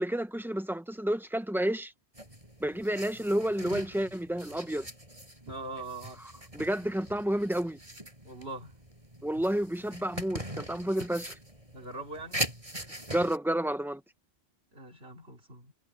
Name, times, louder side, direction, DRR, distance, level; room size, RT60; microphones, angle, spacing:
voice 1, 0.0-1.9 2.6-4.9 6.5-7.8 9.2-11.4 13.1-14.0, right 1 dB, ahead, 1.1 m, -30 dB
sound 1, 2.1-13.4, right 1 dB, 30° right, 8.1 m, -42 dB
voice 2, 5.4-6.4 8.2-8.7 11.7-12.5 14.7-15.7, right 2 dB, 65° right, 4.6 m, -42 dB
omnidirectional pair, 1.1 m